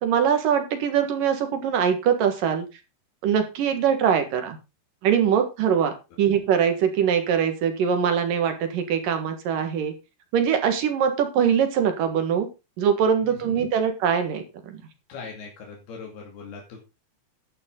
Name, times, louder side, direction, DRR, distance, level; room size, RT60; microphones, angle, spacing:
voice 1, 0.0-2.7 3.2-4.6 5.0-9.9 10.3-12.5 12.8-14.8, right 8 dB, 65° right, 7 dB, 3.2 m, -22 dB
voice 2, 15.1-16.8, left 5 dB, 85° left, 0 dB, 4.6 m, -40 dB
12.0 x 9.9 x 3.9 m, 0.27 s
omnidirectional pair, 4.4 m